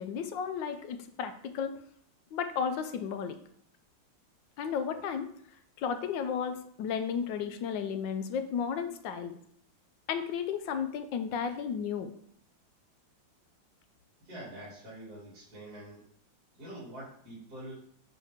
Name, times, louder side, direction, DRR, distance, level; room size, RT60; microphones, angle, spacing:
voice 1, 0.0-1.8 2.3-3.4 4.6-5.3 5.8-9.4 10.1-12.1, left 7 dB, 80° left, 9 dB, 1.4 m, -33 dB
voice 2, 14.2-16.0 16.6-17.7, right 1 dB, 55° right, -8 dB, 3.1 m, -45 dB
7.2 x 5.3 x 3.6 m, 0.63 s
omnidirectional pair, 2.0 m